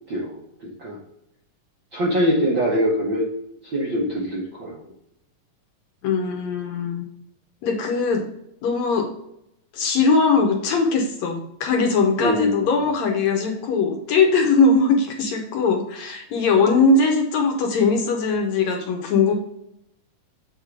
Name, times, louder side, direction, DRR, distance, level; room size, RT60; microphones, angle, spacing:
voice 1, 0.1-1.0 1.9-3.3 3.6-4.8 12.2-12.8, equal, 60° right, -4 dB, 1.3 m, -23 dB
voice 2, 6.0-7.1 7.6-8.2 8.6-9.1 9.7-19.3, left 4 dB, 70° left, 2 dB, 1.9 m, -20 dB
7.3 x 3.6 x 4.9 m, 0.79 s
omnidirectional pair, 3.7 m